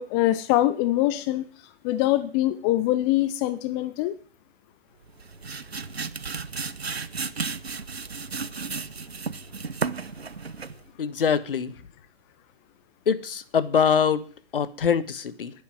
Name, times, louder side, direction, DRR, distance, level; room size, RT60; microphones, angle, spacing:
voice 1, 0.0-1.5 1.8-4.2, left 15 dB, 20° left, 0.6 m, -23 dB
sound 1, 5.1-10.9, right 5 dB, 90° right, 0.9 m, -33 dB
voice 2, 11.0-11.7 13.1-14.2 14.5-15.5, left 7 dB, 65° left, 1.4 m, -23 dB
11.0 x 8.6 x 9.4 m
figure-of-eight pair, 130°, 31 cm